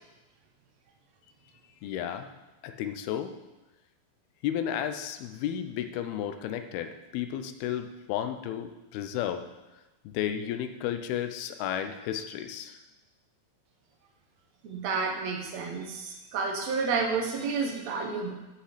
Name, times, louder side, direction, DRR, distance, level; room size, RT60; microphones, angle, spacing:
voice 1, 1.8-2.3 2.6-3.3 4.4-9.4 10.0-12.8, left 10 dB, 80° left, 8 dB, 2.6 m, -33 dB
voice 2, 14.6-18.3, right 4 dB, 65° right, 3 dB, 1.7 m, -30 dB
16.0 x 5.6 x 5.0 m, 1.1 s
omnidirectional pair, 4.5 m